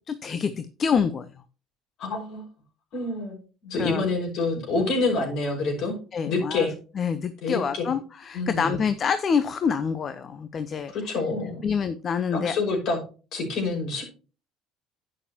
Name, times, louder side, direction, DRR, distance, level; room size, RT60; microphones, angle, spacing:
voice 1, 0.1-1.3 3.8-4.0 6.1-6.7 7.0-10.9 11.6-12.5, left 6 dB, 45° left, 12 dB, 0.9 m, -26 dB
voice 2, 2.0-2.4 2.9-5.9 6.3-6.7 7.4-7.9 8.3-8.8 10.9-11.7 12.3-13.0 13.3-14.1, left 3 dB, 60° left, 2 dB, 5.5 m, -27 dB
11.0 x 8.9 x 2.9 m, 0.35 s
hypercardioid pair, 65°, 0 cm